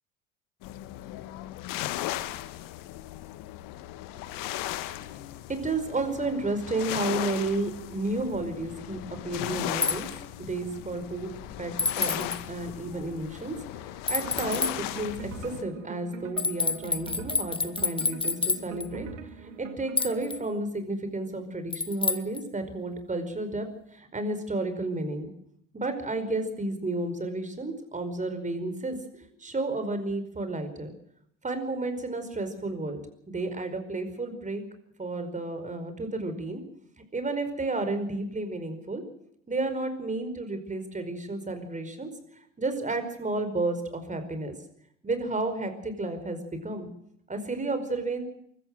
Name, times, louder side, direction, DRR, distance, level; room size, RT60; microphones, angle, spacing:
sound 1, 0.6-15.6, left 14 dB, 60° left, 1.6 m, -37 dB
voice 1, 5.5-9.0 9.2-10.1 10.4-11.3 11.6-19.1 19.4-23.7 23.9-25.3 25.7-31.0 31.4-33.0 33.3-34.6 35.0-36.6 37.1-39.0 39.5-42.1 42.6-44.6 45.0-46.9 47.3-48.3, right 2 dB, 20° right, 8 dB, 5.0 m, -32 dB
sound 2, 9.8-10.0 11.8-12.4 14.1-14.7 16.4-18.9 20.0-20.4 21.7-22.4, left 4 dB, 15° left, 1.5 m, -28 dB
sound 3, 14.2-20.5, right 7 dB, 80° right, 2.2 m, -44 dB
24.0 x 14.5 x 7.6 m, 0.70 s
hypercardioid pair, 70°, 37 cm